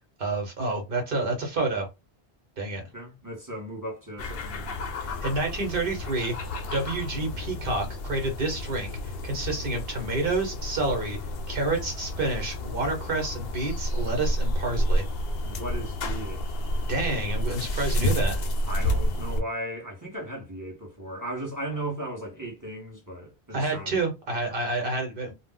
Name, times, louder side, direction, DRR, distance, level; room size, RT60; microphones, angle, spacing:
voice 1, 0.2-1.9 2.6-2.8 5.2-8.9 9.2-11.2 11.5-15.0 16.9-18.4 23.5-25.3, right 2 dB, 60° right, 1.1 m, -29 dB
voice 2, 2.7-4.8 15.4-16.5 18.7-24.0, right 1 dB, 20° right, 0.9 m, -36 dB
sound 1, 4.2-19.4, equal, 70° left, 0.8 m, -30 dB
2.4 x 2.0 x 3.7 m
omnidirectional pair, 1.0 m